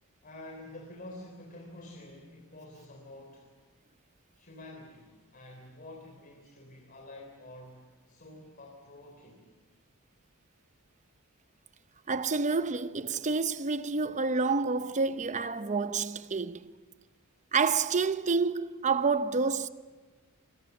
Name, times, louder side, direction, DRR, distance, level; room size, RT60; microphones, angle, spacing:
voice 1, 0.2-3.5 4.4-9.5, left 1 dB, 40° left, 3.5 m, -48 dB
voice 2, 12.1-16.7 17.5-19.7, right 4 dB, 35° right, 0.8 m, -28 dB
26.0 x 23.5 x 7.2 m
head